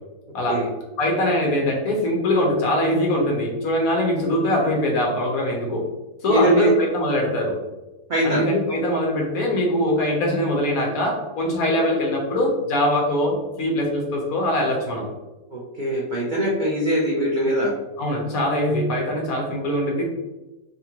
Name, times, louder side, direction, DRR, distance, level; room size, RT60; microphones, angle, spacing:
voice 1, 1.0-5.8 6.2-7.5 8.2-15.1 18.0-20.0, left 1 dB, 65° left, -1 dB, 1.2 m, -22 dB
voice 2, 6.3-6.7 8.1-8.4 15.5-17.7, right 1 dB, 90° right, -4 dB, 0.4 m, -22 dB
3.8 x 2.2 x 2.8 m, 1.1 s
omnidirectional pair, 1.6 m